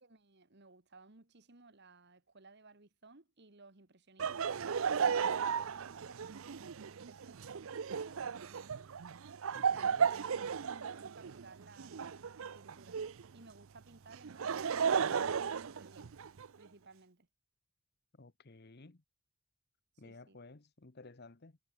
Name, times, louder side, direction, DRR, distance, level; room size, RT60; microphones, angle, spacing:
voice 1, 0.0-4.5 5.2-8.9 9.6-13.0 13.3-16.3 16.6-17.3 20.0-20.4, right 3 dB, 50° right, 1.6 m, -59 dB
Laughter, 4.2-13.3 14.1-16.5, right 6 dB, 65° right, 0.5 m, -35 dB
voice 2, 9.5-10.1 18.2-19.0 20.0-21.6, left 3 dB, 45° left, 1.0 m, -55 dB
head